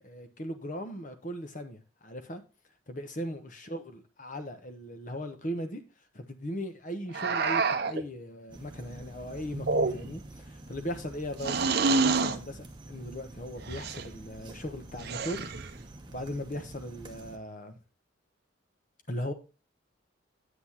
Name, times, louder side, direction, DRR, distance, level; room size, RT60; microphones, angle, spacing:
voice 1, 0.0-2.4 2.9-5.8 6.1-15.4 16.1-17.8 19.1-19.3, equal, 40° left, 1.1 m, -38 dB
sound 1, 7.1-8.0 9.5-10.3 11.4-12.4 13.7-14.1 15.0-15.7, right 4 dB, 50° right, 0.6 m, -28 dB
sound 2, 8.5-17.4, right 2 dB, 25° right, 0.9 m, -47 dB
8.2 x 7.9 x 2.9 m
head